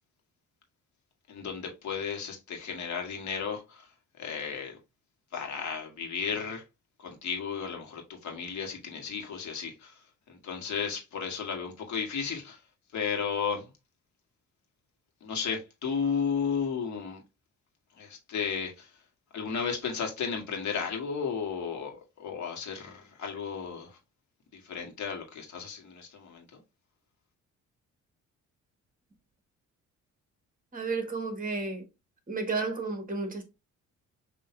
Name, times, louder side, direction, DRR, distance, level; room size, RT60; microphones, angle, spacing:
voice 1, 1.3-3.9 4.2-4.8 5.3-6.6 7.0-10.0 10.3-12.6 12.9-13.7 15.2-17.2 18.0-18.9 19.3-24.0 24.5-26.6, left 6 dB, 70° left, 1.7 m, -34 dB
voice 2, 30.7-31.9 32.3-33.4, right 3 dB, 30° right, 1.6 m, -32 dB
6.0 x 3.0 x 2.7 m
cardioid pair, 90°, 30 cm